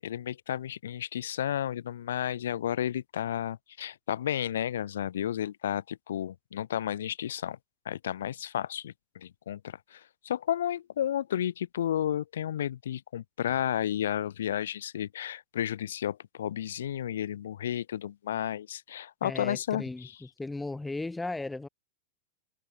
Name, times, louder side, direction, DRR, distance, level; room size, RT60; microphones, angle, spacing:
voice 1, 0.0-7.6 7.9-10.0 10.2-19.8, left 10 dB, 60° left, 7.4 m, -32 dB
voice 2, 19.2-21.7, left 2 dB, 10° left, 6.7 m, -36 dB
figure-of-eight pair, 90°, 0 cm